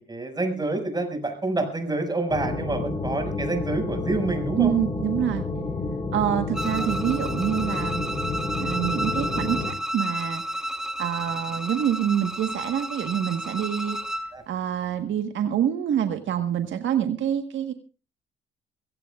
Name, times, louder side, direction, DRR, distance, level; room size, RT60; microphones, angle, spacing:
voice 1, 0.1-4.7 14.3-14.4, right 2 dB, 20° right, 5 dB, 5.9 m, -27 dB
sound 1, 2.3-9.7, left 2 dB, 25° left, 3.8 m, -30 dB
voice 2, 4.6-5.4 6.1-8.0 8.6-10.4 11.0-14.2 14.5-17.7, right 9 dB, 70° right, 6 dB, 1.4 m, -26 dB
Bowed string instrument, 6.5-14.3, equal, ahead, 1.1 m, -32 dB
24.0 x 16.5 x 2.4 m, 0.34 s
cardioid pair, 90°, 20 cm